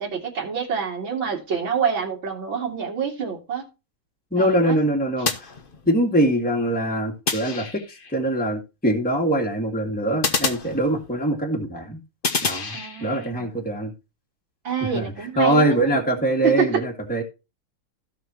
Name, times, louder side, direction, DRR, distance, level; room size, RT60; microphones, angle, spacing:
voice 1, 0.0-3.6 4.4-4.8 12.7-13.5 14.6-16.0 16.4-16.7, right 6 dB, 65° right, 3.1 m, -27 dB
voice 2, 4.3-5.5 5.9-7.8 8.1-12.0 12.4-13.9 14.9-15.0 15.4-17.2, right 1 dB, 5° left, 2.0 m, -23 dB
sound 1, 5.2-6.2 7.3-8.1 10.2-11.3 12.2-13.3, left 4 dB, 35° left, 0.9 m, -28 dB
16.5 x 5.9 x 3.0 m
omnidirectional pair, 2.3 m